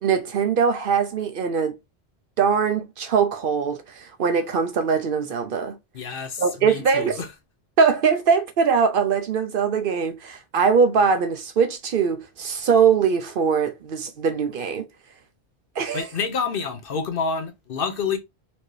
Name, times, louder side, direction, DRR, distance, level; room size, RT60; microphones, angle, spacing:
voice 1, 0.0-1.8 2.4-5.8 6.4-7.2 7.8-14.9 15.8-16.1, right 6 dB, 60° right, 0.7 m, -21 dB
voice 2, 5.9-7.3 15.9-18.2, left 5 dB, 60° left, 0.9 m, -28 dB
4.3 x 2.7 x 3.1 m
omnidirectional pair, 1.1 m